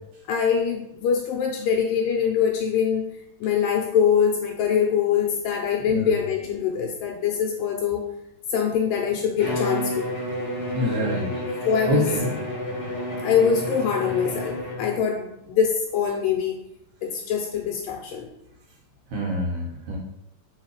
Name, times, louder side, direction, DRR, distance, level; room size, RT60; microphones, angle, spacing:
voice 1, 0.3-3.1 3.4-8.0 8.5-10.1 11.7-12.2 13.2-16.6 17.0-18.3, left 7 dB, 80° left, 1 dB, 2.0 m, -23 dB
Bowed string instrument, 9.4-15.0, equal, 30° left, 1.2 m, -30 dB
voice 2, 10.7-11.3 11.9-12.4 19.1-20.0, equal, 65° right, -2 dB, 2.6 m, -26 dB
7.3 x 3.6 x 4.8 m, 0.86 s
omnidirectional pair, 4.6 m